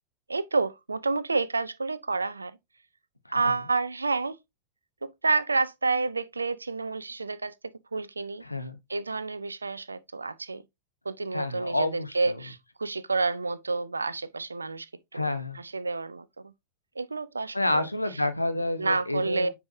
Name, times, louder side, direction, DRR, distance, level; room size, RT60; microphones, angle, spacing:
voice 1, 0.3-2.6 3.3-4.4 5.0-7.5 7.9-8.4 8.9-10.6 11.0-15.2 15.5-16.5 17.0-17.9 18.8-19.5, right 3 dB, 80° right, 0.5 m, -29 dB
voice 2, 8.4-8.8 11.3-12.4 15.1-15.6 17.5-19.5, left 1 dB, 85° left, 0.8 m, -29 dB
9.4 x 4.8 x 2.7 m
figure-of-eight pair, 90°, 0 cm